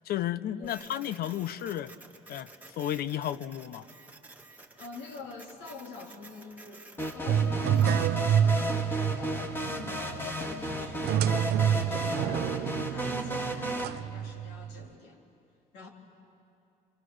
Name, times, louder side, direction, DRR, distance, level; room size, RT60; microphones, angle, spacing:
voice 1, 0.1-1.9 2.3-3.9, left 11 dB, 65° left, 16 dB, 0.8 m, -33 dB
Printer, 0.6-8.0, right 3 dB, 10° right, 1.6 m, -52 dB
voice 2, 4.8-12.5 12.9-15.2 15.7-15.9, left 3 dB, 85° left, 1 dB, 3.4 m, -46 dB
sound 1, 7.0-13.8, equal, 15° left, 1.7 m, -34 dB
sound 2, 7.3-14.8, right 9 dB, 75° right, 0.7 m, -28 dB
28.5 x 24.5 x 6.4 m, 2.7 s
cardioid pair, 110°, 17 cm